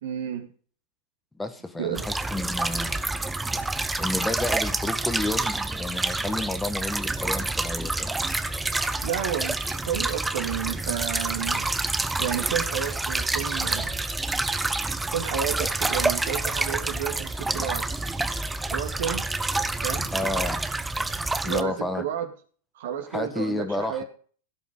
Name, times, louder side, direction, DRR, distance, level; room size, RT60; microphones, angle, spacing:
voice 1, 0.0-0.5 1.8-2.0 9.0-11.7 12.2-14.0 15.1-17.9 18.6-19.2 19.8-20.1 21.4-22.3 22.8-24.0, right 9 dB, 55° right, 5 dB, 2.2 m, -31 dB
voice 2, 1.4-3.1 4.0-8.2 20.1-20.6 21.4-22.1 23.1-24.0, left 2 dB, 10° left, 7 dB, 1.7 m, -31 dB
sound 1, 1.9-21.6, right 2 dB, 10° right, 0.9 m, -28 dB
17.0 x 8.1 x 3.7 m, 0.43 s
figure-of-eight pair, 90°, 0 cm